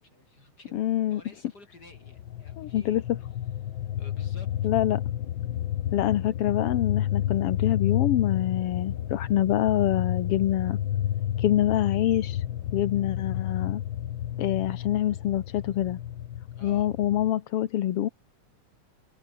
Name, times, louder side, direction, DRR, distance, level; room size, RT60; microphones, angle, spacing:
voice 1, 0.0-0.8 1.1-3.3 3.8-4.5 16.5-16.9, left 2 dB, 30° left, 6.8 m, -52 dB
voice 2, 0.7-1.2 2.6-3.0 4.6-5.0 5.9-10.8 11.4-12.4 12.7-13.8 14.4-16.0 16.6-18.1, left 12 dB, 60° left, 1.7 m, -25 dB
sound 1, 1.9-17.3, left 11 dB, 90° left, 1.0 m, -31 dB
omnidirectional pair, 3.5 m